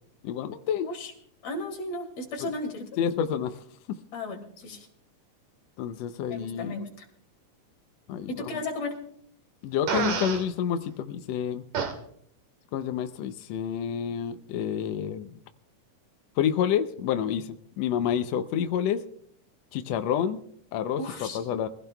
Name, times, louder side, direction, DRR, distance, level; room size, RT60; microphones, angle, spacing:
voice 1, 0.2-0.9 2.4-2.5 3.0-3.6 3.9-4.0 5.8-6.7 8.1-8.5 9.6-11.6 12.7-15.4 16.4-19.0 19.7-20.4 20.7-21.7, left 9 dB, 80° left, 9 dB, 1.5 m, -29 dB
voice 2, 1.4-2.9 4.1-4.9 6.3-7.1 8.3-9.0 21.0-21.4, left 2 dB, 50° left, 2 dB, 3.4 m, -35 dB
Fart, 9.9-10.4 11.7-11.9, right 6 dB, 75° right, 3.2 m, -28 dB
24.0 x 16.0 x 2.3 m, 0.65 s
omnidirectional pair, 3.7 m